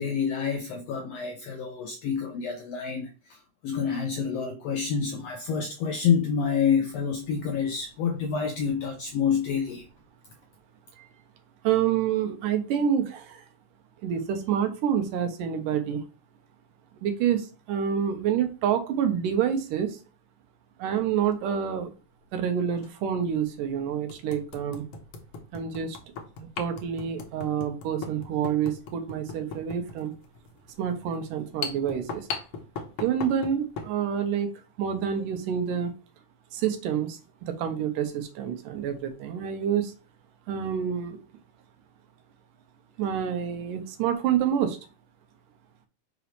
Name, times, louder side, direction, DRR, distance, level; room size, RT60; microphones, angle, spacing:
voice 1, 0.0-3.4 3.6-9.8, left 6 dB, 80° left, 1.4 m, -28 dB
voice 2, 11.6-13.5 14.0-16.0 17.0-20.0 20.8-21.9 22.3-24.8 25.5-26.0 26.6-30.1 30.8-32.3 33.0-34.5 34.8-35.9 36.5-39.9 40.5-41.2 43.0-44.8, right 8 dB, 85° right, 2.6 m, -27 dB
sound 1, 21.1-21.3 22.8-22.9 23.5-23.6 24.1-34.0, left 5 dB, 65° left, 1.7 m, -39 dB
6.1 x 5.1 x 3.2 m
omnidirectional pair, 3.7 m